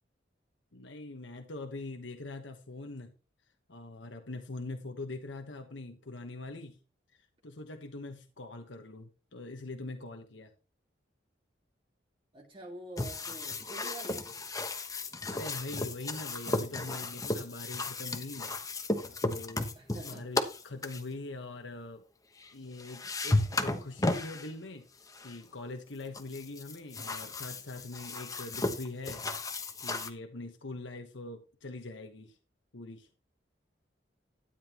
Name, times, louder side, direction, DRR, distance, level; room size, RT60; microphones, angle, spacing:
voice 1, 0.7-3.1 3.7-6.8 7.1-10.5 15.3-18.6 19.2-19.7 20.0-22.0 22.5-24.9 25.2-32.4 32.7-33.1, left 2 dB, 80° left, 5 dB, 1.2 m, -43 dB
voice 2, 12.3-14.3 19.8-20.3, right 1 dB, 30° right, -2 dB, 2.0 m, -46 dB
sound 1, 13.0-21.0 22.4-22.5 22.8-24.5 25.1-25.4 26.1-30.1, left 2 dB, 20° left, 1.1 m, -34 dB
12.5 x 10.0 x 3.0 m, 0.32 s
head